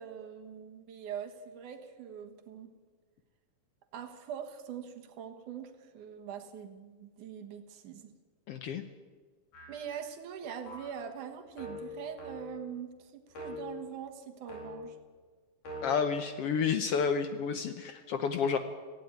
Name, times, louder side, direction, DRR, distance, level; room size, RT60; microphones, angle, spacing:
voice 1, 0.0-2.7 3.9-8.1 9.7-15.0, right 8 dB, 80° right, 5 dB, 2.9 m, -43 dB
voice 2, 8.5-8.8 15.8-18.6, left 6 dB, 65° left, 9 dB, 1.5 m, -30 dB
sound 1, 9.5-10.0 10.7-11.0 11.6-12.7 13.3-13.8 14.5-15.0 15.7-15.9, left 2 dB, 80° left, 6.0 m, -43 dB
17.5 x 16.0 x 9.3 m, 1.5 s
omnidirectional pair, 3.5 m